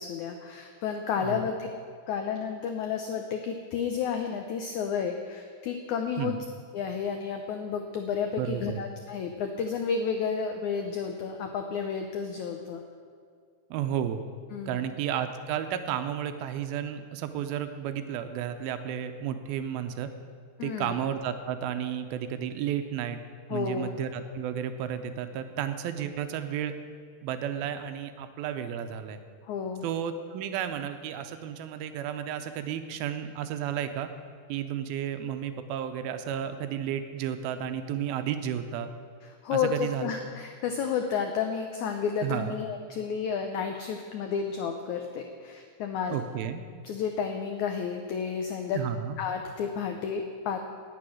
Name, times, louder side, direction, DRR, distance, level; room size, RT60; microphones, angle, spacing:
voice 1, 0.0-1.7 2.1-6.4 6.7-12.8 14.5-14.8 20.6-21.0 23.5-23.9 29.5-29.8 39.4-46.2 46.8-48.8 49.2-50.6, left 6 dB, 85° left, 5 dB, 1.6 m, -31 dB
voice 2, 8.4-8.8 13.7-14.2 14.7-20.1 20.6-23.2 23.5-26.7 27.2-29.2 29.8-34.1 34.5-38.9 39.5-40.1 42.2-42.6 46.1-46.6 48.7-49.2, right 9 dB, 80° right, 9 dB, 2.4 m, -32 dB
18.5 x 6.9 x 6.3 m, 2.1 s
omnidirectional pair, 4.4 m